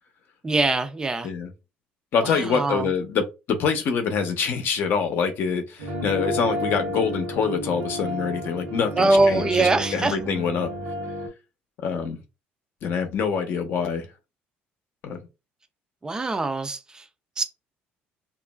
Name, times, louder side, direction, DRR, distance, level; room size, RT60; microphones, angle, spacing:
voice 1, 0.4-1.3 2.2-2.9 9.0-10.2 16.0-17.1 17.4-17.5, right 2 dB, 20° right, 0.3 m, -23 dB
voice 2, 2.1-10.7 11.8-12.2 12.8-14.1 15.0-15.2, left 6 dB, 60° left, 0.6 m, -25 dB
sound 1, 5.8-11.3, equal, 80° right, 0.9 m, -31 dB
2.9 x 2.4 x 2.2 m
cardioid pair, 125°, 4 cm